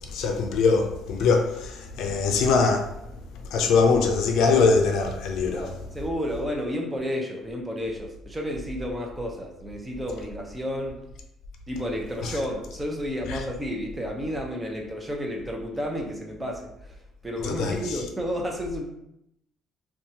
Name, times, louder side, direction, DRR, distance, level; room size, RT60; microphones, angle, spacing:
voice 1, 0.0-3.0 3.5-5.6 12.2-12.3 13.3-13.4 17.4-18.0, left 4 dB, 75° left, 0.4 m, -22 dB
voice 2, 5.5-11.0 11.7-17.0 17.2-18.8, equal, 15° right, 0.6 m, -31 dB
2.8 x 2.3 x 2.7 m
cardioid pair, 90°, 0 cm